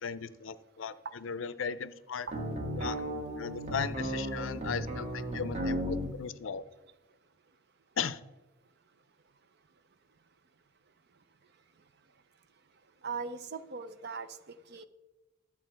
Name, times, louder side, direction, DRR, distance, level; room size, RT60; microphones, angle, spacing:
voice 1, 0.0-2.3 2.8-6.6 8.0-8.2, left 6 dB, 65° left, 15 dB, 0.5 m, -37 dB
sound 1, 2.3-6.1, equal, 35° right, 1.4 m, -35 dB
voice 2, 13.0-14.9, right 5 dB, 50° right, 12 dB, 0.6 m, -40 dB
12.5 x 7.5 x 4.5 m, 1.1 s
head